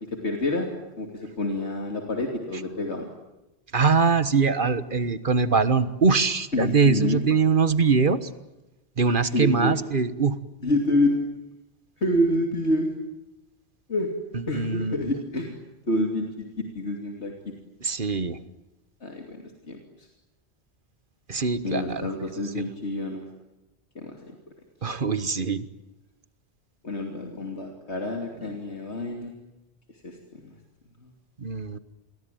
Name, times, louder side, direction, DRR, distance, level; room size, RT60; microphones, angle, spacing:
voice 1, 0.1-0.7 1.0-3.1 6.5-7.2 9.2-9.7 10.6-11.1 12.0-12.9 13.9-14.1 14.5-15.6 15.9-17.5 19.0-20.1 21.6-23.2 23.9-24.3 26.8-29.3 30.0-30.5 31.0-31.1, left 1 dB, 90° left, 2 dB, 3.1 m, -28 dB
voice 2, 3.7-8.3 9.0-10.4 14.3-15.0 17.8-18.4 21.3-22.1 22.5-22.7 24.8-25.6 31.4-31.8, right 5 dB, 50° right, 13 dB, 1.5 m, -23 dB
28.5 x 22.0 x 9.3 m, 0.97 s
omnidirectional pair, 1.1 m